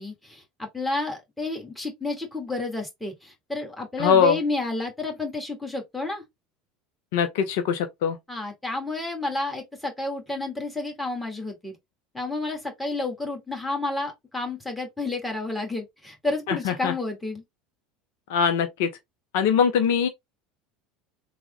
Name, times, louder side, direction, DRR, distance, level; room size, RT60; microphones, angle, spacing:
voice 1, 0.0-6.2 8.3-11.8 12.1-17.4, left 2 dB, 5° left, 1.5 m, -30 dB
voice 2, 4.0-4.4 7.1-8.2 16.5-16.9 18.3-18.9 19.3-20.1, left 7 dB, 65° left, 0.5 m, -22 dB
3.4 x 2.1 x 3.2 m
hypercardioid pair, 75°, 0 cm